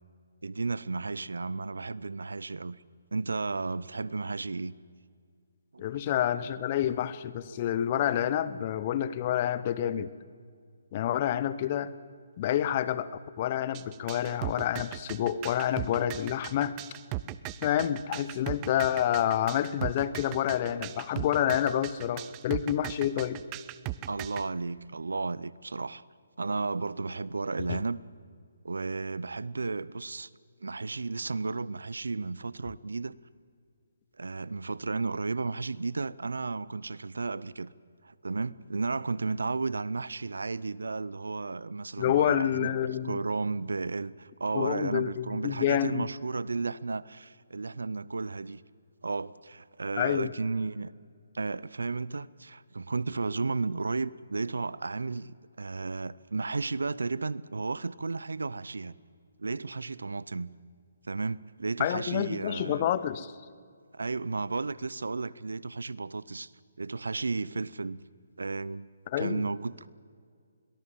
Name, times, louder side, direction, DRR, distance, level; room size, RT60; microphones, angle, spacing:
voice 1, 0.4-2.8 3.1-4.7 5.7-6.0 24.1-26.0 26.4-28.0 28.6-30.3 30.6-33.2 34.2-37.7 38.0-42.8 43.0-48.6 49.0-50.9 51.3-59.0 59.4-60.5 61.0-62.9 63.9-66.5 66.8-68.0 68.4-68.9 69.2-69.9, right 3 dB, 75° right, 21 dB, 0.6 m, -33 dB
voice 2, 5.8-10.1 10.9-11.9 12.4-13.1 13.4-16.8 17.6-23.4 27.7-27.8 42.0-43.2 44.5-46.1 50.0-50.3 61.8-63.3 69.1-69.4, left 11 dB, 35° left, 16 dB, 0.9 m, -28 dB
sound 1, 13.7-24.4, right 16 dB, 25° right, 0.6 m, -38 dB
22.0 x 19.0 x 7.5 m, 2.1 s
figure-of-eight pair, 145°, 0 cm